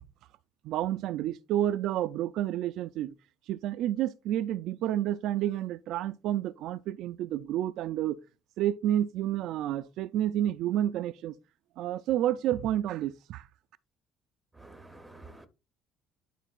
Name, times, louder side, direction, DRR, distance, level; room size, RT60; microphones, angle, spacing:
voice 1, 0.6-3.1 3.5-8.2 8.6-11.3 11.8-13.5, right 12 dB, 65° right, 0.3 m, -30 dB
voice 2, 14.6-15.5, right 2 dB, 5° right, 0.7 m, -49 dB
11.0 x 3.8 x 2.4 m
cardioid pair, 155°, 0 cm